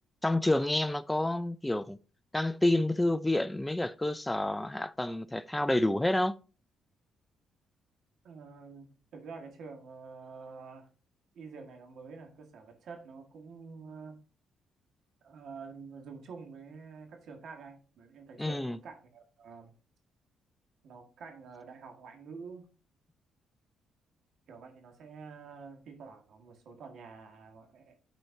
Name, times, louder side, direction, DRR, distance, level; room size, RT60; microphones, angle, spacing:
voice 1, 0.2-2.0 2.3-6.3 18.4-18.8, left 1 dB, 10° left, 0.5 m, -29 dB
voice 2, 8.2-10.9 11.3-14.2 15.2-19.7 20.8-22.7 24.5-28.0, right 5 dB, 70° right, 1.8 m, -48 dB
12.0 x 4.4 x 2.7 m
cardioid pair, 90°, 0 cm